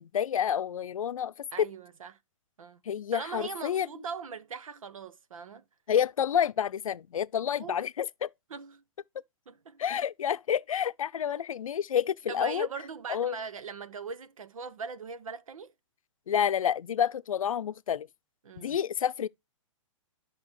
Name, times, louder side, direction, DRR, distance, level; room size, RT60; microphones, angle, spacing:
voice 1, 0.0-1.7 2.9-3.9 5.9-8.3 9.8-12.7 13.1-13.4 16.3-18.1 18.6-19.3, left 9 dB, 90° left, 0.6 m, -29 dB
voice 2, 1.5-2.2 2.6-2.8 3.1-5.6 7.6-7.8 8.5-8.8 9.5-9.8 11.3-11.4 12.3-15.7 18.4-18.8, right 5 dB, 85° right, 1.1 m, -40 dB
10.5 x 5.8 x 3.1 m
hypercardioid pair, 145°, 17 cm